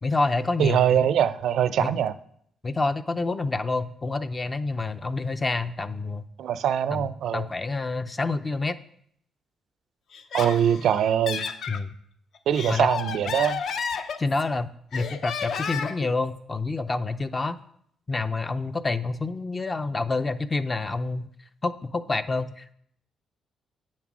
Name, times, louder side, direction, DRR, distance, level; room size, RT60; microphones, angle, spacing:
voice 1, 0.0-1.1 1.8-1.9 2.6-6.2 6.9-8.8 11.7-11.9 12.7-12.9 14.2-17.6 18.1-21.3 21.6-22.7, left 3 dB, 20° left, 12 dB, 0.4 m, -28 dB
voice 2, 0.6-2.1 6.4-7.5 10.3-11.5 12.5-13.6, right 9 dB, 65° right, 14 dB, 0.4 m, -23 dB
Laughter, 10.1-11.8 12.3-14.5 14.9-16.1, left 6 dB, 55° left, 0.7 m, -32 dB
8.7 x 7.3 x 6.0 m, 0.66 s
cardioid pair, 165°, 0 cm